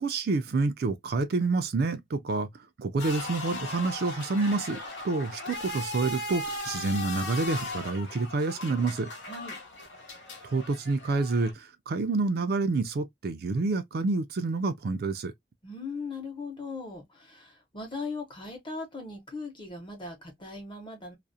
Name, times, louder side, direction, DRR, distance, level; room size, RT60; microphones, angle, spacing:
voice 1, 0.0-2.5 2.8-4.8 5.0-9.1 10.4-15.3, right 3 dB, 55° right, 0.4 m, -28 dB
sound 1, 3.0-11.5, left 2 dB, 80° left, 0.9 m, -38 dB
voice 2, 9.3-9.6 15.6-21.2, left 3 dB, 30° left, 0.9 m, -39 dB
2.4 x 2.0 x 2.6 m
head